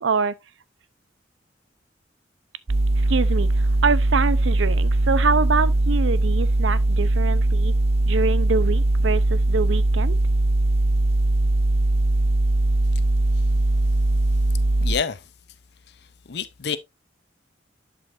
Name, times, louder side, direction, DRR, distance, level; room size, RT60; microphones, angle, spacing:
voice 1, 0.0-0.3 3.0-7.7 8.0-10.2, right 4 dB, 85° right, 0.6 m, -25 dB
sound 1, 2.7-15.0, right 2 dB, 35° right, 0.5 m, -20 dB
voice 2, 14.8-15.3 15.9-16.8, left 6 dB, 60° left, 0.6 m, -29 dB
11.0 x 5.1 x 2.5 m
head